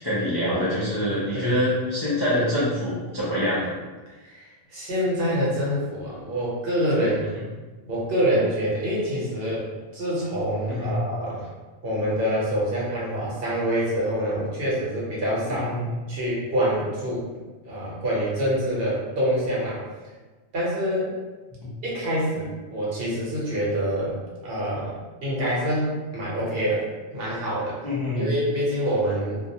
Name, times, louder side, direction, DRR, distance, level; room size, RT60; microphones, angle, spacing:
voice 1, 0.0-3.7 10.7-11.0 15.5-15.9 21.6-21.7 27.8-28.3, left 1 dB, 40° left, -9 dB, 0.3 m, -25 dB
voice 2, 1.0-1.6 4.2-7.3 7.8-11.4 11.8-15.7 16.1-17.2 17.6-19.8 20.5-21.1 21.8-24.2 24.4-24.9 25.2-26.9 27.1-27.8 28.2-29.4, equal, 65° right, -6 dB, 1.0 m, -26 dB
2.3 x 2.2 x 2.7 m, 1.3 s
omnidirectional pair, 1.1 m